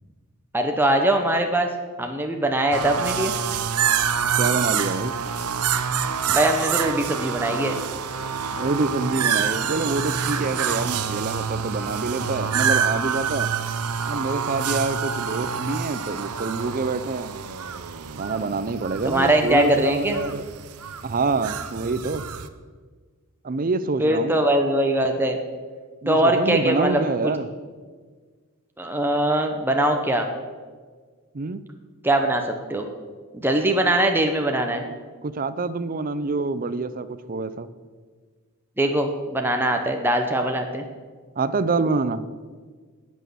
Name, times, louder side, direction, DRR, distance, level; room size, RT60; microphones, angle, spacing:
voice 1, 0.5-1.7 2.0-3.3 6.3-7.8 19.0-20.2 24.0-25.4 26.1-27.0 28.8-30.3 32.0-32.4 32.7-32.9 33.3-34.8 38.8-40.8, right 1 dB, 10° right, 3 dB, 0.8 m, -21 dB
sound 1, 2.7-22.5, right 7 dB, 85° right, 0.8 m, -27 dB
voice 2, 4.4-5.2 8.5-13.5 14.1-17.3 18.2-20.5 21.0-22.2 23.4-24.4 26.0-27.5 31.3-31.6 35.2-37.7 41.4-42.2, right 3 dB, 40° right, 15 dB, 0.5 m, -26 dB
18.5 x 6.3 x 6.9 m, 1.5 s
head